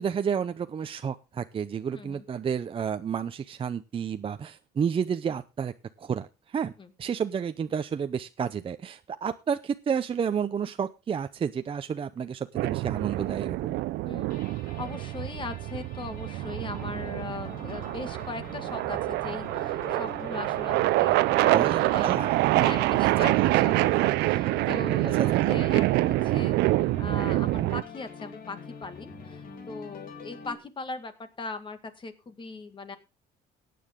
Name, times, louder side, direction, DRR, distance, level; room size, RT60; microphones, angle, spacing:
voice 1, 0.0-5.7 6.0-6.7 7.0-13.7 21.5-22.4 23.0-23.5 25.2-25.6, right 7 dB, 30° right, 9 dB, 0.6 m, -31 dB
voice 2, 1.9-2.2 6.8-6.9 14.0-14.3 14.8-22.1 22.6-26.5 27.0-33.0, left 3 dB, 30° left, 9 dB, 2.0 m, -39 dB
sound 1, 12.5-27.8, right 19 dB, 85° right, 0.5 m, -26 dB
sound 2, 14.3-30.6, left 5 dB, 60° left, 3.0 m, -45 dB
16.5 x 9.4 x 3.7 m, 0.29 s
cardioid pair, 110°, 17 cm